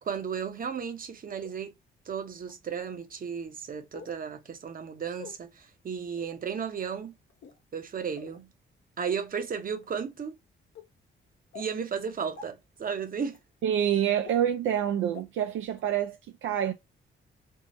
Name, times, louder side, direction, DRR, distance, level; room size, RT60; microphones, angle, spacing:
voice 1, 0.0-1.7 2.1-7.1 7.7-8.5 9.0-10.4 11.5-13.4, right 6 dB, 45° right, 0.8 m, -34 dB
sound 1, 1.4-1.5 2.4-2.5 3.9-4.2 5.1-5.3 6.1-6.3 7.3-7.6 8.2-8.4 9.1-9.2 9.8-10.0 10.7-10.8 11.5-11.7 12.4-12.5 13.3-13.4 14.2-14.3 15.1-15.2 15.7-15.8, left 7 dB, 75° left, 0.9 m, -46 dB
voice 2, 13.6-16.7, right 9 dB, 75° right, 0.4 m, -27 dB
3.6 x 2.1 x 2.4 m
cardioid pair, 85°, 20 cm